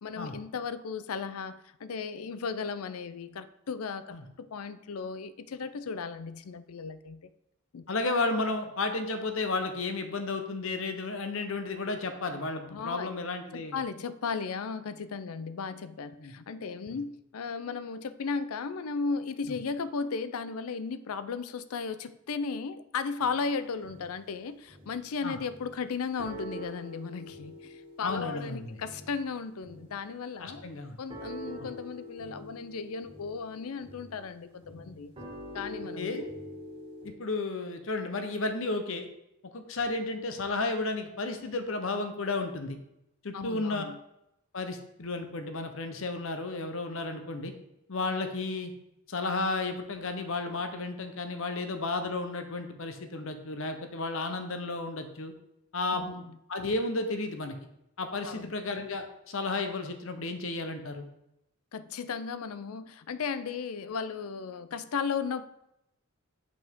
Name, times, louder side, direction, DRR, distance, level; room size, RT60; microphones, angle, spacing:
voice 1, 0.0-7.2 7.7-7.8 12.7-13.1 13.5-30.6 31.0-35.1 35.5-36.3 43.3-44.0 55.9-56.4 58.3-58.5 61.7-65.4, left 5 dB, 80° left, 13 dB, 0.5 m, -35 dB
voice 2, 7.9-13.8 16.2-16.3 25.2-25.4 28.0-28.8 30.4-31.0 31.6-31.7 36.0-36.2 37.0-39.1 39.5-42.8 43.2-43.8 44.5-47.5 47.9-48.7 49.1-55.3 55.7-56.2 56.5-57.6 58.0-61.1, left 3 dB, 65° left, 7 dB, 0.9 m, -33 dB
sound 1, 23.2-24.3 24.7-25.0 25.4-25.9 26.2-37.1, equal, 25° right, 1.7 m, -45 dB
8.0 x 5.2 x 3.6 m, 0.83 s
head